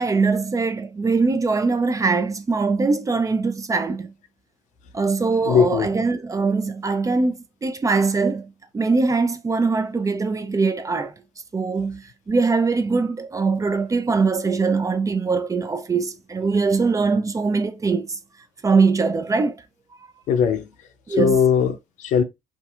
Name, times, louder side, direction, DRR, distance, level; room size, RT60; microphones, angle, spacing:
voice 1, 0.0-4.1 4.9-11.1 11.5-18.2 18.6-19.5 21.1-21.4, right 4 dB, 25° right, 0.4 m, -22 dB
voice 2, 5.5-5.9 20.3-20.7 21.2-22.2, left 7 dB, 65° left, 0.5 m, -19 dB
2.6 x 2.4 x 2.3 m
hypercardioid pair, 50°, 14 cm